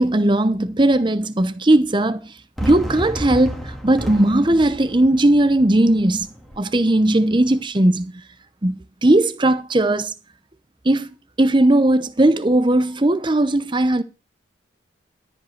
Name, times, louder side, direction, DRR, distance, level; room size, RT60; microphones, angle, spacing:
voice 1, 0.0-2.2 2.6-6.3 6.6-8.2 8.6-10.1 10.8-11.1 11.4-14.0, right 1 dB, 25° right, 0.8 m, -17 dB
Fireworks, 2.6-7.6, equal, ahead, 2.1 m, -33 dB
13.5 x 5.3 x 6.5 m
head